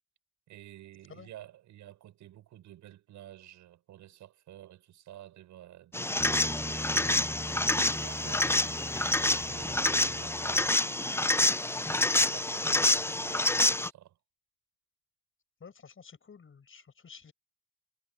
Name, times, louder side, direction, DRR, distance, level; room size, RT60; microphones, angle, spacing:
voice 1, 0.5-7.6 7.9-9.0 9.5-11.1 11.9-14.2, right 13 dB, 65° right, 7.4 m, -51 dB
sound 1, 5.9-13.9, left 2 dB, 10° left, 0.9 m, -27 dB
sound 2, 6.2-11.1, right 1 dB, 10° right, 1.5 m, -42 dB
voice 2, 15.6-17.3, left 6 dB, 40° left, 6.5 m, -51 dB
hypercardioid pair, 50°, 31 cm